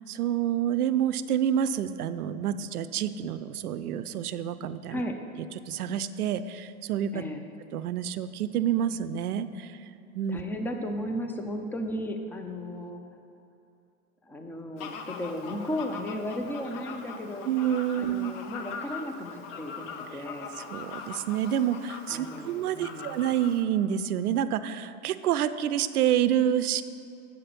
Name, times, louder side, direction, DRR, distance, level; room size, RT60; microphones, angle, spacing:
voice 1, 0.1-5.0 5.7-7.2 7.7-9.7 10.1-10.4 17.4-18.3 20.7-26.8, right 10 dB, 85° right, 13 dB, 0.6 m, -28 dB
voice 2, 4.9-5.2 7.1-7.4 10.3-13.0 14.3-17.5 18.0-20.5 22.1-23.2, equal, 5° left, 5 dB, 0.5 m, -35 dB
Fowl, 14.8-23.6, left 5 dB, 55° left, 0.9 m, -41 dB
7.7 x 5.8 x 6.8 m, 2.6 s
hypercardioid pair, 105°, 44 cm